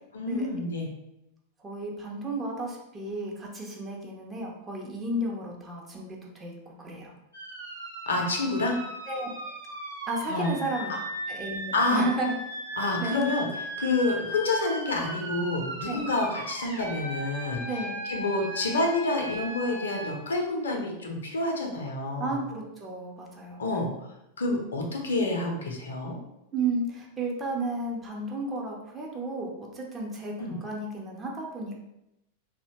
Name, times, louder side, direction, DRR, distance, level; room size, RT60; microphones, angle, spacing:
voice 1, 0.1-0.9 8.1-8.8 10.3-10.6 10.9-11.0 11.7-12.0 12.8-17.6 18.1-22.4 23.6-23.9 24.4-26.2 30.4-30.6, left 2 dB, 70° left, 1 dB, 0.5 m, -28 dB
voice 2, 1.6-6.5 6.8-7.1 9.1-9.3 10.1-10.9 11.3-12.3 13.0-13.2 15.8-16.0 17.7-18.0 22.2-23.6 26.5-31.7, right 2 dB, 20° right, -2 dB, 0.6 m, -33 dB
sound 1, 7.3-20.1, equal, 85° right, 0.7 m, -37 dB
2.7 x 2.1 x 2.7 m, 0.86 s
figure-of-eight pair, 90°, 0 cm